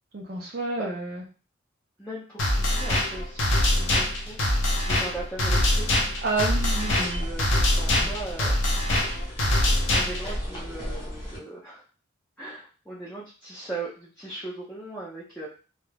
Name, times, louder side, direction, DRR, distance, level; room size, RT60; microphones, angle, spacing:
voice 1, 0.1-1.2 6.2-7.3, right 3 dB, 50° right, -1 dB, 0.4 m, -29 dB
voice 2, 2.0-4.4 4.6-6.0 7.0-8.5 9.9-11.8 12.4-15.5, right 2 dB, 5° left, -8 dB, 0.5 m, -39 dB
sound 1, 2.4-10.4, left 1 dB, 75° left, 0.6 m, -24 dB
sound 2, 6.3-11.4, equal, 25° left, 0.9 m, -35 dB
2.3 x 2.1 x 3.2 m, 0.36 s
head